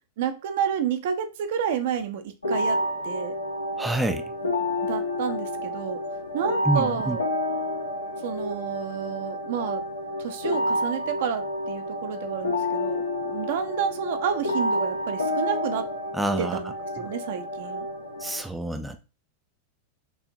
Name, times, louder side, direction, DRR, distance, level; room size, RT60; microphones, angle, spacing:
voice 1, 0.2-2.8 3.0-3.4 4.8-6.0 6.3-7.3 8.2-9.8 10.2-15.9 16.4-17.9, right 8 dB, 55° right, 8 dB, 0.6 m, -30 dB
sound 1, 2.4-18.4, left 1 dB, 75° left, 0.9 m, -29 dB
voice 2, 3.8-4.3 6.7-7.2 16.1-16.6 18.2-19.0, right 2 dB, 5° right, 7 dB, 0.4 m, -27 dB
6.2 x 2.8 x 2.6 m, 0.31 s
figure-of-eight pair, 90°, 0 cm